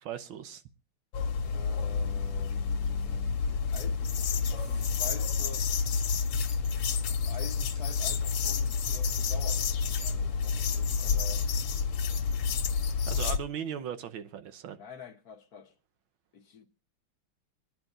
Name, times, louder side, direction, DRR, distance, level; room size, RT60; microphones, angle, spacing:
voice 1, 0.0-0.6 13.1-14.8, right 8 dB, 70° right, 1.6 m, -38 dB
sound 1, 1.1-13.4, left 5 dB, 90° left, 2.0 m, -29 dB
voice 2, 1.4-5.8 7.1-11.5 14.7-15.7 16.3-16.7, left 6 dB, 55° left, 1.2 m, -47 dB
sound 2, 2.7-3.1 4.5-4.9 6.3-8.0, equal, 15° right, 2.7 m, -59 dB
25.0 x 10.0 x 2.4 m
omnidirectional pair, 2.4 m